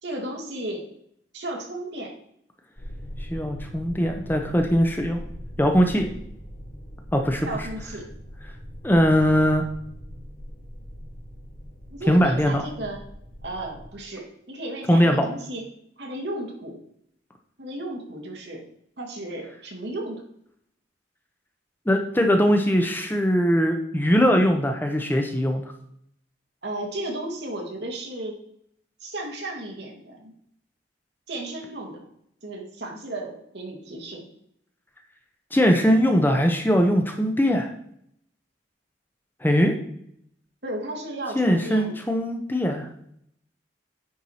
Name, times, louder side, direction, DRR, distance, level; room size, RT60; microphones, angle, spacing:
voice 1, 0.0-0.8 1.3-2.1 7.4-8.1 11.9-13.0 13.4-15.6 16.0-16.8 17.6-18.6 19.0-20.2 26.6-28.4 29.0-30.3 31.3-32.1 32.4-34.2 40.6-42.0, right 1 dB, 60° right, 1 dB, 1.8 m, -34 dB
sound 1, 2.8-13.9, equal, 50° left, 2.2 m, -40 dB
voice 2, 3.3-5.2 5.6-6.1 7.1-7.5 8.8-9.6 12.1-12.6 14.9-15.2 21.9-25.6 35.5-37.7 39.4-39.8 41.3-42.9, equal, 10° left, 4 dB, 0.7 m, -20 dB
9.3 x 4.7 x 4.2 m, 0.71 s
head